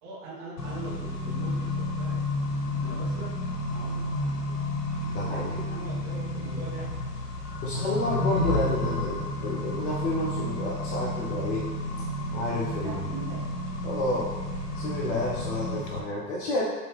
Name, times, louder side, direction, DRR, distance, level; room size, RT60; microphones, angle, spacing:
voice 1, 0.0-3.3 3.7-4.6 5.2-7.0 7.7-8.0 8.4-9.0 12.7-13.5, right 2 dB, 25° right, -5 dB, 1.1 m, -42 dB
Accelerating revving vroom, 0.6-16.0, left 1 dB, 75° left, 0.8 m, -31 dB
voice 2, 5.0-5.5 7.6-11.6 12.3-13.1 13.8-14.3 14.7-16.6, left 2 dB, 45° left, -4 dB, 0.7 m, -30 dB
4.9 x 2.7 x 3.2 m, 1.3 s
figure-of-eight pair, 115°, 48 cm